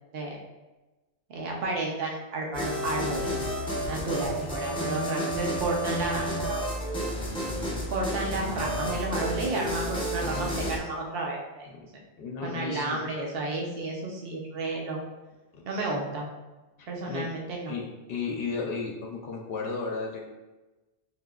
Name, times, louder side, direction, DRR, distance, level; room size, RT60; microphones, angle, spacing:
voice 1, 1.3-3.3 3.9-6.7 7.9-11.7 12.4-15.0 15.6-16.3 16.9-17.7, right 2 dB, 65° right, -1 dB, 0.9 m, -32 dB
sound 1, 2.5-10.8, equal, 5° left, 0.6 m, -31 dB
voice 2, 12.2-13.0 15.5-15.6 16.8-17.3 17.7-17.8 18.1-20.3, left 4 dB, 70° left, 0 dB, 0.8 m, -34 dB
5.1 x 2.8 x 2.3 m, 1.1 s
omnidirectional pair, 1.1 m